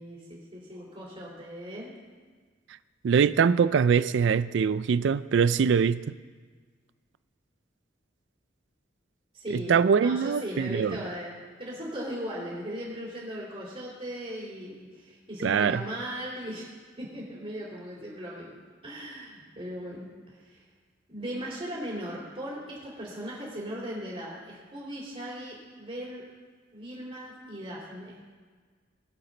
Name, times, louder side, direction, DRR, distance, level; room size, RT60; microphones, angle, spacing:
voice 1, 0.0-1.9 9.3-16.7 17.0-18.5 18.8-20.6 21.1-26.2 26.7-28.2, equal, 35° right, -8 dB, 3.0 m, -38 dB
voice 2, 3.0-6.1 9.5-11.0 15.4-15.8, right 6 dB, 65° right, 15 dB, 0.4 m, -23 dB
21.5 x 7.6 x 4.0 m, 1.5 s
head